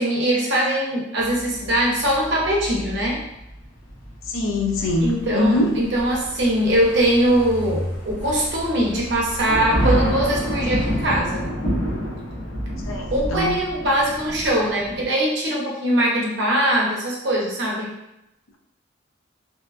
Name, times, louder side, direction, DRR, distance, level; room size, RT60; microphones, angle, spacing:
voice 1, 0.0-3.2 5.0-11.5 13.1-17.9, right 1 dB, 55° right, -3 dB, 0.6 m, -21 dB
sound 1, 1.2-7.6 7.8-8.3 8.6-8.7 9.1-15.1, equal, 60° left, 0.8 m, -28 dB
voice 2, 4.3-5.7 12.9-13.0 13.3-13.6, left 2 dB, 80° left, 1 dB, 0.5 m, -22 dB
Truck, 4.7-11.2, equal, 10° left, 0.5 m, -35 dB
2.7 x 2.2 x 2.3 m, 0.87 s
head